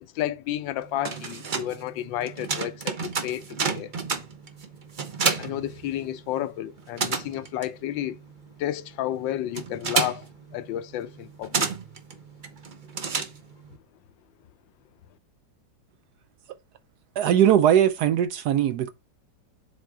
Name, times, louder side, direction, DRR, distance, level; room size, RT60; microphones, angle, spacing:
voice 1, 0.0-3.9 5.4-8.2 8.6-10.3 10.5-11.7, left 12 dB, 80° left, 1.3 m, -31 dB
sound 1, 0.8-6.4 6.7-13.7, right 5 dB, 45° right, 0.6 m, -31 dB
voice 2, 17.2-18.9, right 10 dB, 70° right, 1.0 m, -20 dB
7.5 x 3.6 x 4.7 m
omnidirectional pair, 2.0 m